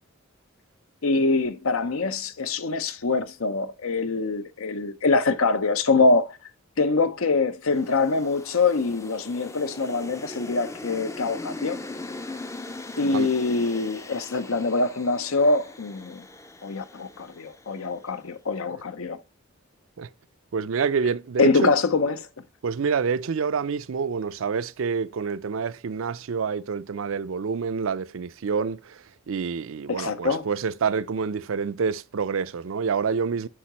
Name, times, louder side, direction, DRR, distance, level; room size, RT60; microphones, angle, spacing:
voice 1, 1.0-6.4 6.8-11.8 13.0-16.2 16.6-19.2 21.4-22.3 29.9-30.4, left 3 dB, 75° left, 0.7 m, -24 dB
sound 1, 7.7-18.1, left 2 dB, 15° left, 0.4 m, -40 dB
voice 2, 20.5-21.7 22.6-33.5, right 5 dB, 70° right, 0.4 m, -27 dB
8.5 x 4.7 x 2.9 m
head